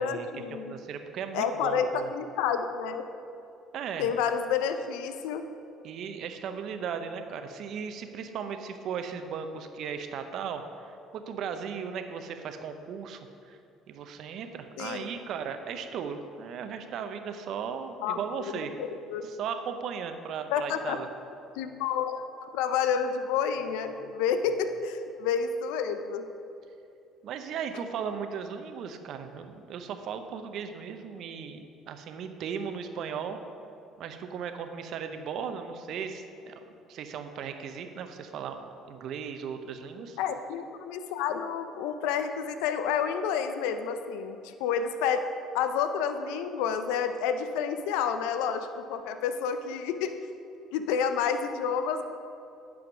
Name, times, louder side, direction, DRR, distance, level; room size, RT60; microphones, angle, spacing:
voice 1, 0.0-0.7 1.3-3.0 4.0-5.4 14.8-15.1 18.0-18.2 18.8-19.3 20.5-21.0 21.6-26.3 40.2-45.3 45.5-50.2 50.7-52.0, left 7 dB, 80° left, 9 dB, 0.5 m, -29 dB
voice 2, 0.7-2.1 3.7-4.1 5.8-13.2 13.5-13.6 13.9-18.7 19.2-21.1 27.2-33.4 34.0-40.2, right 7 dB, 65° right, 7 dB, 0.7 m, -37 dB
9.6 x 5.1 x 6.0 m, 2.6 s
supercardioid pair, 70°, 0 cm